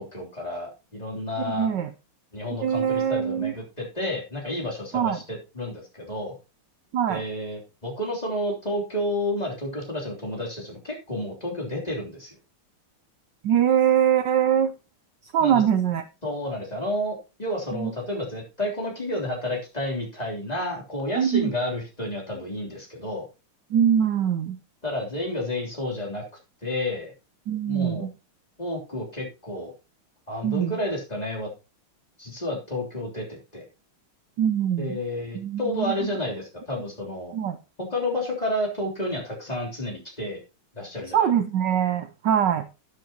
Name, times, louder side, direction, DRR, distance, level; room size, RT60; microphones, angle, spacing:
voice 1, 0.0-1.7 2.3-6.4 7.1-12.3 15.4-15.6 16.2-23.3 24.8-26.2 26.6-27.1 27.7-28.1 28.6-29.7 30.3-31.5 32.2-33.6 34.8-37.3 37.9-40.4 40.7-41.3, left 1 dB, 20° left, -2 dB, 3.3 m, -31 dB
voice 2, 1.5-1.9 2.6-3.5 4.9-5.2 6.9-7.2 13.4-14.7 15.2-16.0 17.7-17.9 21.2-21.5 23.7-24.6 27.5-28.1 30.4-30.8 34.4-35.0 35.3-35.9 37.3-37.6 41.1-42.7, right 9 dB, 70° right, 11 dB, 1.2 m, -23 dB
12.0 x 9.6 x 2.9 m, 0.28 s
omnidirectional pair, 2.3 m